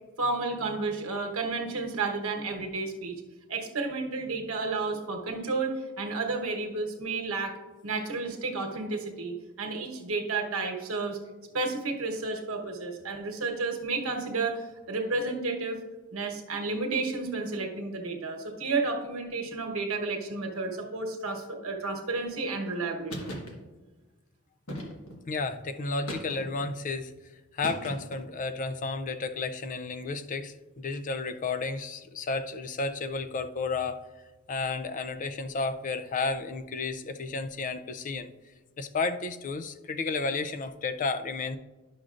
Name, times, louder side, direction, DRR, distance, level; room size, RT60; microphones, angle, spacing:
voice 1, 0.2-3.2 3.5-7.5 7.8-11.2 11.5-15.8 16.1-23.3, right 3 dB, 75° right, 1 dB, 1.1 m, -31 dB
sound 1, 23.1-23.5 24.7-25.2 26.1-26.7 27.6-28.3, equal, 75° left, 1.5 m, -38 dB
voice 2, 25.3-27.1 27.5-34.0 34.5-38.3 38.8-41.6, left 3 dB, 40° left, 10 dB, 0.4 m, -32 dB
10.5 x 6.3 x 2.5 m, 1.2 s
head